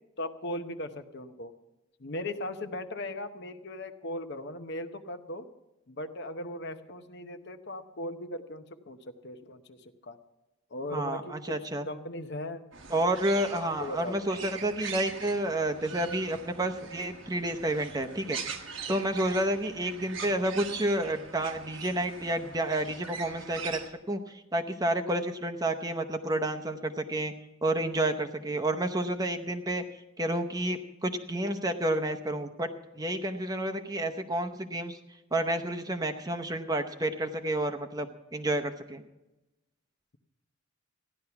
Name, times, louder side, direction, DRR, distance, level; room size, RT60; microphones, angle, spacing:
voice 1, 0.2-1.5 2.0-5.5 5.9-9.0 9.2-10.2 10.7-11.3 11.9-12.6 13.5-14.4, left 1 dB, 55° left, 8 dB, 0.9 m, -38 dB
voice 2, 10.9-11.9 12.9-18.4 18.9-23.8 24.1-27.3 27.6-29.8 30.2-32.7 33.0-35.0 35.3-39.0, right 1 dB, 20° right, 6 dB, 0.8 m, -30 dB
sound 1, 12.7-23.9, right 6 dB, 65° right, 1.2 m, -42 dB
15.0 x 11.0 x 5.8 m, 0.99 s
head